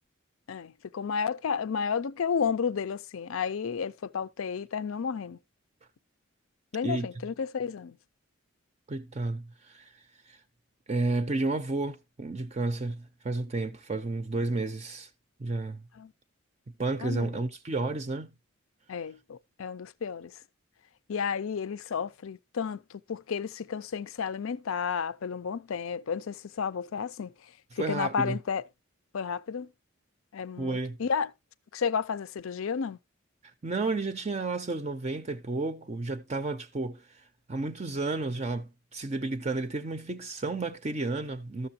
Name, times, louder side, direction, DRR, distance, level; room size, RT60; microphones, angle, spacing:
voice 1, 0.5-5.4 6.7-8.0 16.0-16.1 17.0-17.4 18.9-20.4 21.1-28.6 29.1-29.7 30.3-31.3 31.7-33.0, left 6 dB, 70° left, 0.4 m, -32 dB
voice 2, 8.9-9.9 10.3-10.4 10.9-15.1 15.4-15.8 16.8-18.3 27.8-28.4 30.6-31.0 33.6-37.2 37.5-41.7, right 3 dB, 30° right, 0.5 m, -32 dB
13.5 x 6.8 x 2.8 m
head